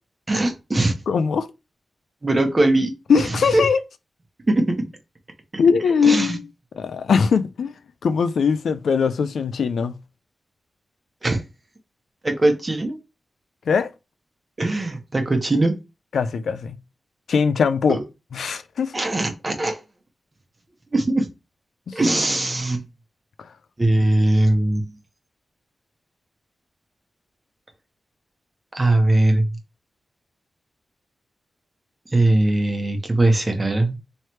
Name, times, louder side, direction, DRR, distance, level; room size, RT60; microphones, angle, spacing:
voice 1, 0.3-0.9 2.2-2.9 3.5-3.6 4.5-4.9 6.0-6.4 11.2-11.4 12.2-13.0 14.6-15.7 17.9-18.0 18.9-19.8 20.9-21.3 21.9-22.8 23.8-24.9 28.7-29.5 32.1-34.0, right 2 dB, 30° right, 1.0 m, -20 dB
voice 2, 1.1-1.5 3.1-3.8 5.6-6.4 6.7-7.7 8.0-10.0 13.7-13.9 16.1-16.8 17.3-18.0 18.3-18.9 21.9-22.0, left 6 dB, 90° left, 0.3 m, -20 dB
3.2 x 3.1 x 4.3 m
cardioid pair, 75°, 0 cm